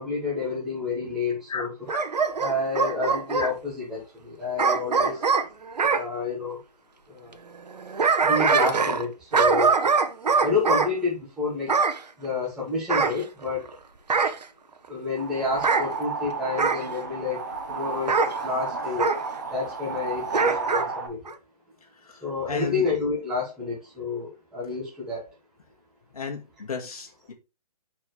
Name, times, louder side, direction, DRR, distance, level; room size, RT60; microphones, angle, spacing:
voice 1, 0.0-1.7 2.4-5.2 5.8-6.6 7.1-7.4 8.2-9.8 10.4-11.8 12.2-13.7 14.9-17.4 17.7-19.1 19.5-21.2 22.2-25.3, left 3 dB, 5° right, 1.4 m, -29 dB
Bark / Growling, 1.9-3.5 4.6-6.0 7.7-9.1 9.3-10.9 11.7-12.0 12.9-13.7 14.1-14.4 15.5-15.9 16.6-16.9 18.1-18.3 19.0-19.2 20.3-20.9 21.3-21.4, right 5 dB, 90° right, 1.1 m, -23 dB
sound 1, 15.2-21.1, right 4 dB, 25° right, 1.0 m, -32 dB
voice 2, 21.9-22.9 26.1-27.3, left 5 dB, 65° left, 1.9 m, -34 dB
8.4 x 4.7 x 3.2 m
hypercardioid pair, 180°, 20 cm